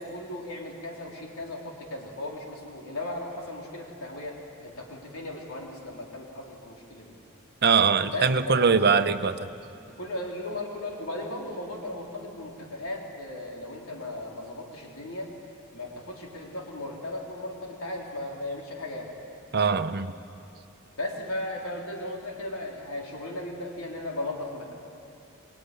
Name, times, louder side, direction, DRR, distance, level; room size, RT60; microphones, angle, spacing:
voice 1, 0.0-7.1 8.1-9.1 10.0-15.3 15.7-19.1 21.0-24.7, left 1 dB, 90° left, -1 dB, 4.0 m, -36 dB
voice 2, 7.6-9.3 19.5-20.1, right 5 dB, 50° right, 9 dB, 0.9 m, -22 dB
25.5 x 20.5 x 10.0 m, 2.7 s
head